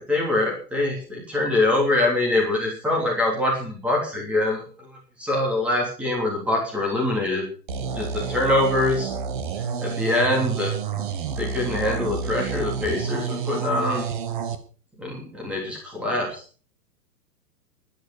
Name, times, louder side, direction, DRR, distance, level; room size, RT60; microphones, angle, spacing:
voice 1, 0.0-7.5 7.9-9.1 9.8-11.0 11.4-14.1 15.0-16.4, left 2 dB, ahead, -2 dB, 3.1 m, -24 dB
sound 1, 7.7-14.6, right 6 dB, 30° right, 1.2 m, -29 dB
11.5 x 11.5 x 6.4 m, 0.40 s
hypercardioid pair, 175°, 50 cm